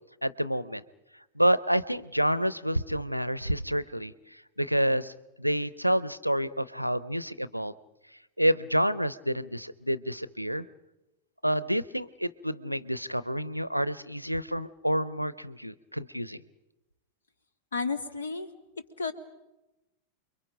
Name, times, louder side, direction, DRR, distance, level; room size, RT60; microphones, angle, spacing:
voice 1, 0.2-0.8 1.4-7.7 8.4-10.7 11.4-16.4, equal, 90° right, 18 dB, 0.7 m, -28 dB
voice 2, 17.7-18.5 19.0-19.1, left 4 dB, 70° left, 10 dB, 1.9 m, -31 dB
29.0 x 23.0 x 5.1 m, 1.0 s
figure-of-eight pair, 90°, 0 cm